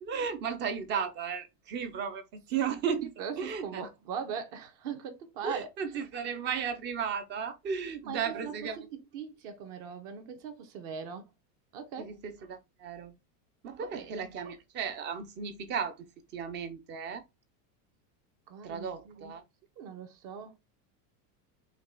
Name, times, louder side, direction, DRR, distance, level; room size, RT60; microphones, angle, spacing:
voice 1, 0.0-3.9 5.4-8.8 12.0-13.1 13.6-15.9 16.3-17.2 18.6-19.4, right 6 dB, 25° right, 0.5 m, -35 dB
voice 2, 3.2-5.7 8.0-11.3 11.7-12.1 13.8-14.3 18.5-19.4 19.8-20.6, right 7 dB, 55° right, 1.1 m, -40 dB
5.2 x 2.4 x 3.7 m
supercardioid pair, 160°, 47 cm